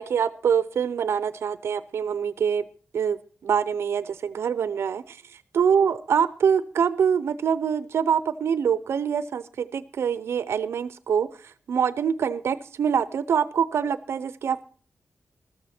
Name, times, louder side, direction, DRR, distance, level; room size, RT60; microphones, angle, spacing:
voice 1, 0.0-2.6 2.9-14.6, right 7 dB, 85° right, 16 dB, 0.6 m, -25 dB
14.0 x 13.0 x 4.3 m, 0.41 s
wide cardioid pair, 170°, 4 cm